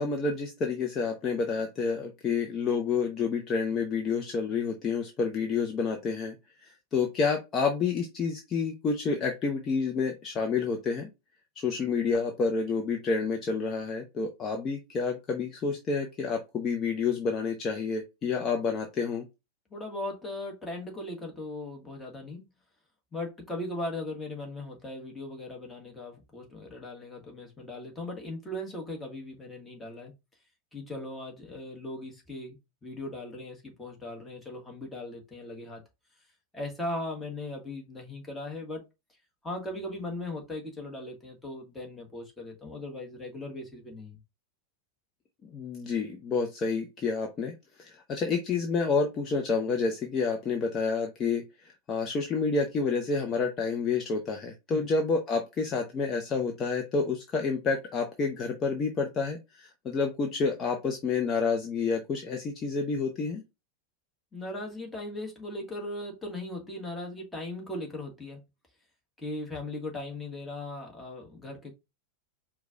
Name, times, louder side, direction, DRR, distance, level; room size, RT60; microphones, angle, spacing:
voice 1, 0.0-6.3 6.6-11.1 11.6-19.2 45.4-47.5 47.8-63.4, left 4 dB, 25° left, 0.7 m, -29 dB
voice 2, 19.7-22.4 23.1-30.1 30.7-35.8 36.5-38.8 39.4-44.2 54.7-54.9 64.3-68.4 69.2-71.7, left 1 dB, 10° left, 1.5 m, -38 dB
4.9 x 2.3 x 3.8 m
figure-of-eight pair, 90°, 0 cm